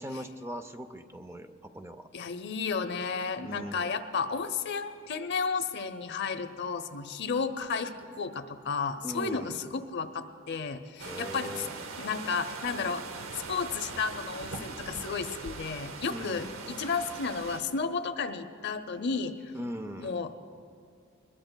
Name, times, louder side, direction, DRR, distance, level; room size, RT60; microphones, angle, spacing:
voice 1, 0.0-2.1 3.4-3.9 9.0-9.6 11.0-11.7 16.1-16.6 19.5-20.2, equal, 15° right, 8 dB, 0.5 m, -40 dB
voice 2, 2.1-11.7 12.0-13.0 13.3-19.5 20.0-20.3, left 5 dB, 55° left, 9 dB, 0.6 m, -33 dB
sound 1, 11.0-17.6, right 4 dB, 80° right, 0.8 m, -41 dB
22.0 x 21.0 x 2.2 m, 2.5 s
head